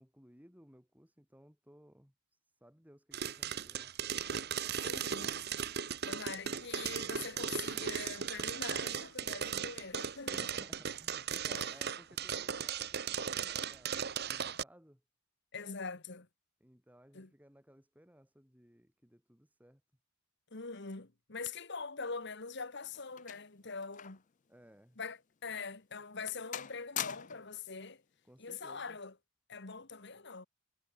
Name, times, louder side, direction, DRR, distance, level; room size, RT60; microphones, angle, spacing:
voice 1, 0.0-3.9 10.3-15.0 16.6-19.8 24.5-25.0 28.2-29.0, equal, 5° right, 3.2 m, -60 dB
sound 1, 3.1-14.6, right 7 dB, 50° right, 1.2 m, -37 dB
voice 2, 4.8-5.4 6.1-10.5 11.5-11.7 15.5-16.3 17.1-17.3 20.5-24.2 25.0-28.0 28.4-29.1 29.5-30.5, left 4 dB, 55° left, 1.6 m, -43 dB
sound 2, 22.2-24.3 24.6-24.8 25.4-25.6 26.0-26.3 26.5-27.6 28.6-28.9, left 11 dB, 35° left, 0.4 m, -43 dB
head